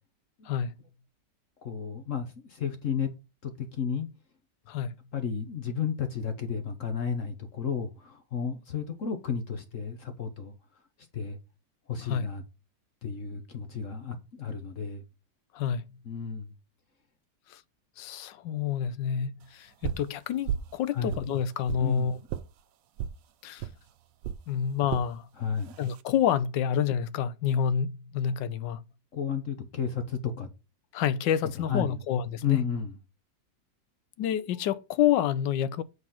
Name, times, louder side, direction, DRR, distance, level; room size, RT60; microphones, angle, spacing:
voice 1, 1.6-3.1 3.4-4.1 5.1-10.5 11.1-11.4 11.9-12.4 13.0-15.0 16.0-16.5 20.9-21.2 21.8-22.3 25.4-25.7 29.1-30.5 31.4-32.0 32.4-33.0, left 6 dB, 50° left, 1.2 m, -32 dB
voice 2, 18.0-22.2 23.4-23.7 24.5-25.3 25.8-28.8 30.9-32.6 34.2-35.8, left 9 dB, 90° left, 1.4 m, -28 dB
sound 1, 19.8-20.1 20.5-20.8 21.1-21.9 22.3-22.5 23.0-23.2 23.6-23.8 24.2-24.4 24.9-25.1 25.7-26.0, right 9 dB, 85° right, 1.3 m, -33 dB
8.0 x 4.0 x 5.7 m
omnidirectional pair, 1.9 m